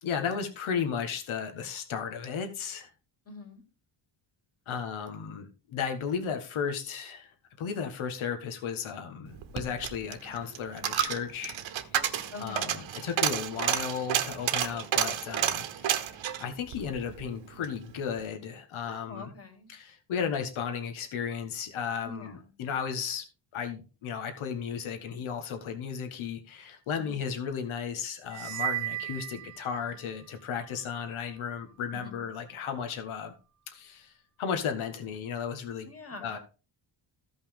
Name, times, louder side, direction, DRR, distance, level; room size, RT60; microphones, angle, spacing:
voice 1, 0.0-2.9 4.7-16.1 16.4-19.3 19.7-23.2 23.5-33.3 33.7-34.1 34.4-35.9 36.2-36.4, left 7 dB, 90° left, 1.5 m, -34 dB
voice 2, 3.3-3.6 12.3-12.8 18.8-19.7 22.0-22.4 27.0-27.2 31.9-32.2 35.8-36.4, left 3 dB, 30° left, 2.4 m, -44 dB
Coin (dropping), 9.3-17.8 18.1-18.2, right 10 dB, 75° right, 1.1 m, -31 dB
sound 1, 28.3-30.2, right 14 dB, 35° right, 0.5 m, -35 dB
15.0 x 5.6 x 3.6 m
wide cardioid pair, 150°, 47 cm